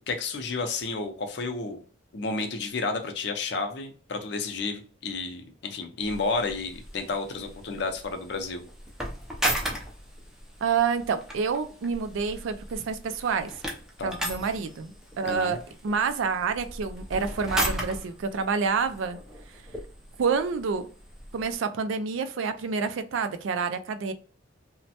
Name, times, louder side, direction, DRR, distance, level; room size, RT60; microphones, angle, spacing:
voice 1, 0.1-1.8 2.1-8.6 14.0-14.2 15.2-15.6, left 3 dB, 60° left, 0.5 m, -31 dB
sound 1, 6.0-21.5, equal, 5° right, 0.4 m, -36 dB
voice 2, 10.6-13.6 14.0-15.6 15.8-19.2 20.2-20.9 21.3-24.1, right 5 dB, 80° right, 0.4 m, -28 dB
3.1 x 2.1 x 2.8 m
head